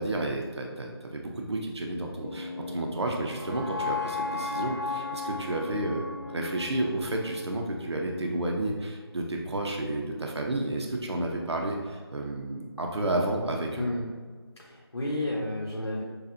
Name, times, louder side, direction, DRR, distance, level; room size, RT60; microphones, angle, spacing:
voice 1, 0.0-13.9, right 1 dB, 80° right, 1 dB, 0.7 m, -31 dB
sound 1, 2.1-8.2, left 4 dB, 55° left, 1.3 m, -36 dB
voice 2, 14.6-16.0, left 1 dB, 85° left, -4 dB, 1.1 m, -31 dB
6.8 x 2.4 x 2.6 m, 1.5 s
figure-of-eight pair, 165°, 14 cm